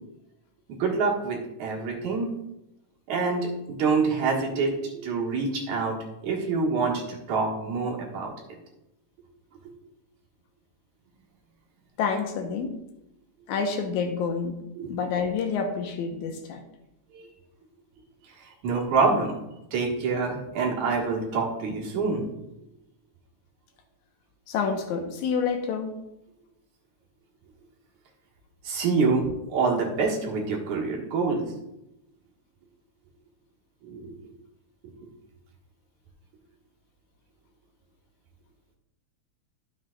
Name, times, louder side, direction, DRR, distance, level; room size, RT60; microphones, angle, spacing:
voice 1, 0.7-2.3 3.1-4.7 5.0-6.0 6.2-8.3 14.8-14.9 17.1-17.3 18.6-19.3 19.7-22.2 28.6-31.5 33.8-34.1, right 4 dB, 80° right, -2 dB, 2.9 m, -26 dB
voice 2, 12.0-12.8 13.5-14.6 14.9-16.6 24.5-26.0, left 5 dB, 85° left, 4 dB, 2.4 m, -28 dB
12.5 x 7.3 x 2.4 m, 0.89 s
omnidirectional pair, 3.3 m